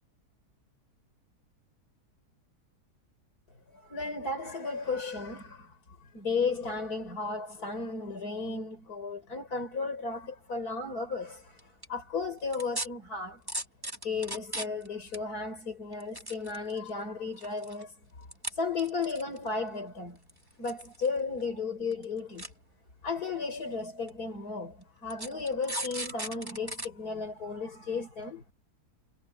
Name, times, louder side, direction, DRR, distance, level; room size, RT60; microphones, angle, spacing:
voice 1, 3.7-13.4 14.0-18.3 18.5-20.2 20.6-22.5 23.0-28.4, left 4 dB, 65° left, 4.9 m, -34 dB
sound 1, 11.6-11.9 12.5-12.9 13.5-14.9 15.1-15.2 15.9-16.9 17.4-17.8 18.3-18.5 18.8-19.5 20.3-21.1 21.4-21.5 21.9-22.0 22.4-22.5 23.3-23.4 24.1-24.2 25.1-26.9 27.3-27.4, right 1 dB, 15° right, 3.0 m, -36 dB
omnidirectional pair, 1.7 m